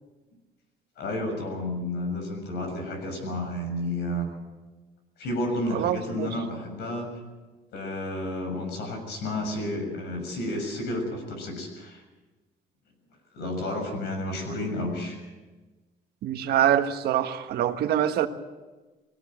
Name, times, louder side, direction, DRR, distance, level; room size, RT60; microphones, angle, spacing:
voice 1, 1.0-4.3 5.2-7.2 7.7-12.0 13.3-15.2, left 1 dB, 75° left, 5 dB, 6.9 m, -31 dB
voice 2, 5.7-6.3 16.2-18.3, right 11 dB, 70° right, 8 dB, 1.5 m, -25 dB
22.0 x 18.0 x 7.7 m, 1.2 s
cardioid pair, 110°, 17 cm